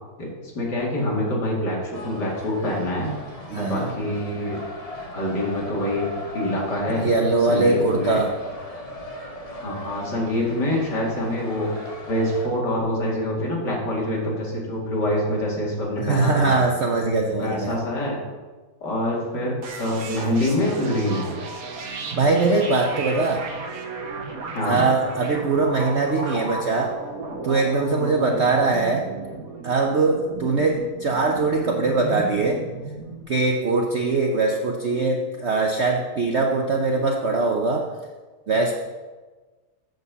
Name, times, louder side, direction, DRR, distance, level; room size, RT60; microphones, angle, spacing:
voice 1, 0.2-3.1 3.6-4.6 5.1-7.1 7.5-8.2 9.6-11.7 12.1-16.6 17.4-18.2 18.8-21.3 24.5-24.9 27.9-28.3, left 1 dB, 55° left, -3 dB, 2.9 m, -25 dB
sound 1, 1.9-12.5, left 1 dB, 25° left, 1.0 m, -38 dB
voice 2, 3.5-3.9 6.9-8.4 16.0-17.8 22.1-23.4 24.6-27.0 27.4-29.1 29.6-32.6 33.3-37.9 38.5-38.7, right 3 dB, 90° right, 1 dB, 0.6 m, -22 dB
sound 2, 19.6-33.2, right 3 dB, 50° right, 1.4 m, -34 dB
7.8 x 6.5 x 6.9 m, 1.3 s
omnidirectional pair, 2.2 m